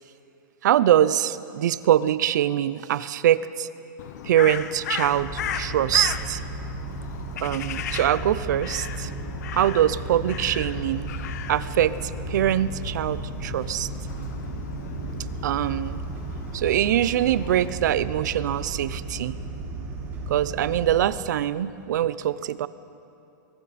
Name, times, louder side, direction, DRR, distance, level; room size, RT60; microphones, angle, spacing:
voice 1, 0.6-3.7 4.2-6.4 7.4-9.1 9.5-11.1 11.5-13.9 15.4-16.0 16.5-19.4 20.3-22.7, right 11 dB, 60° right, 16 dB, 0.7 m, -23 dB
Crow, 4.0-17.7, left 9 dB, 55° left, 1.0 m, -36 dB
sound 1, 5.1-21.1, right 3 dB, 20° right, 4.2 m, -34 dB
29.0 x 22.0 x 4.3 m, 2.7 s
supercardioid pair, 175°, 11 cm